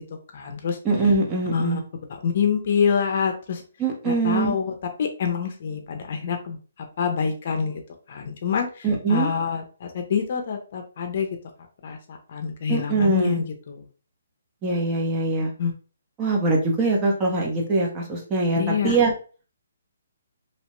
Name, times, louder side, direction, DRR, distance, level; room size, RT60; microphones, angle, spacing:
voice 1, 0.3-0.8 1.5-1.8 2.2-3.6 4.0-6.6 7.0-7.8 8.1-11.3 11.8-13.8 15.6-15.7 18.6-19.0, left 6 dB, 45° left, 5 dB, 0.6 m, -26 dB
voice 2, 0.8-1.8 3.8-4.6 8.8-9.3 12.7-13.4 14.6-15.5 16.2-19.1, right 3 dB, 20° right, -1 dB, 0.7 m, -22 dB
2.8 x 2.1 x 3.0 m, 0.37 s
hypercardioid pair, 160°, 0 cm